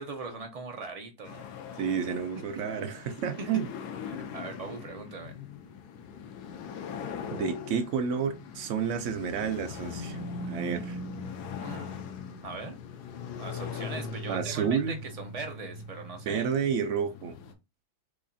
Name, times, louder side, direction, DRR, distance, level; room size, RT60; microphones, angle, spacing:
voice 1, 0.0-1.4 2.6-2.7 4.1-5.3 11.6-12.0 12.4-12.7 13.4-16.5, right 3 dB, 40° right, 0.5 m, -40 dB
sound 1, 1.2-17.5, left 4 dB, 90° left, 1.2 m, -40 dB
voice 2, 1.8-3.7 7.3-11.0 14.3-15.0 16.3-17.4, right 7 dB, 65° right, 0.8 m, -30 dB
4.7 x 2.5 x 2.6 m
omnidirectional pair, 1.7 m